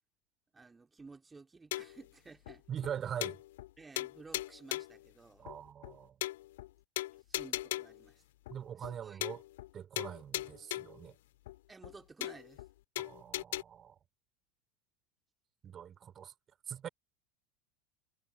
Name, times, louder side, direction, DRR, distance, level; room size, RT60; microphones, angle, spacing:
voice 1, 0.5-2.6 3.8-5.5 7.3-8.2 8.8-9.3 11.7-12.7, right 4 dB, 15° right, 3.5 m, -54 dB
sound 1, 1.7-2.0 2.5-2.6 2.8-2.9 3.2-3.7 4.0-5.0 5.5-5.6 5.8-5.9 6.2-6.7 7.0-8.0 8.5-8.6 8.8-8.9 9.2-9.7 10.0-11.0 11.5-11.6 11.8-11.9 12.2-12.7 13.0-13.6, left 16 dB, 60° left, 1.6 m, -38 dB
voice 2, 2.7-3.4 5.4-6.2 8.5-9.4 9.7-11.1 13.0-14.0 15.6-16.3 16.7-16.9, right 9 dB, 30° right, 3.7 m, -42 dB
figure-of-eight pair, 80°, 0 cm